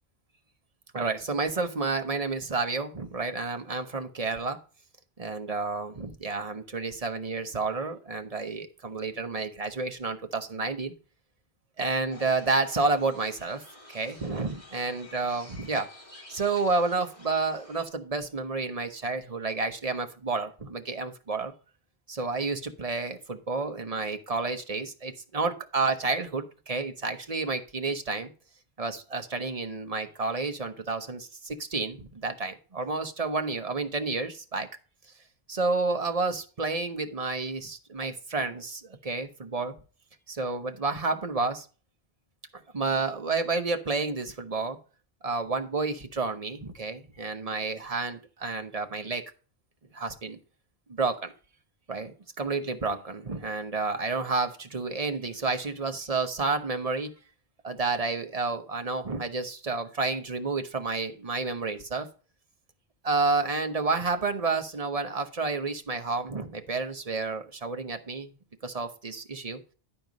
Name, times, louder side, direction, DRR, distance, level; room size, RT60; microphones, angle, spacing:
voice 1, 0.9-4.6 5.2-10.9 11.8-13.6 13.9-15.9 16.3-21.5 22.1-28.3 28.8-34.7 35.5-39.7 40.3-41.7 42.7-44.8 45.2-49.2 49.9-50.4 51.0-51.3 51.9-57.1 57.6-62.1 63.0-68.3 68.6-69.6, right 3 dB, 35° right, 7 dB, 1.0 m, -30 dB
sound 1, 12.1-17.9, left 1 dB, 30° left, 2.9 m, -50 dB
11.0 x 4.5 x 5.1 m, 0.37 s
omnidirectional pair, 1.1 m